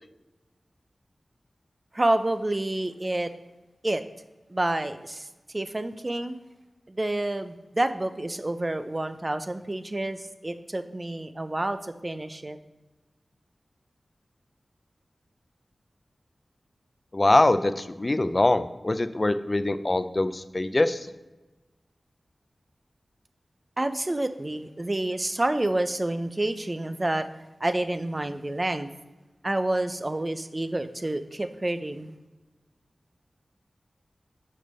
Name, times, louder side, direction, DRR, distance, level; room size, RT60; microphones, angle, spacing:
voice 1, 1.9-3.3 3.8-4.0 4.5-5.3 5.5-6.4 6.9-12.6 23.8-27.3 27.6-28.9 29.4-32.2, right 1 dB, 35° right, 11 dB, 0.6 m, -28 dB
voice 2, 17.1-21.1, left 2 dB, 40° left, 11 dB, 0.5 m, -23 dB
6.6 x 5.2 x 5.5 m, 1.1 s
cardioid pair, 45°, 0 cm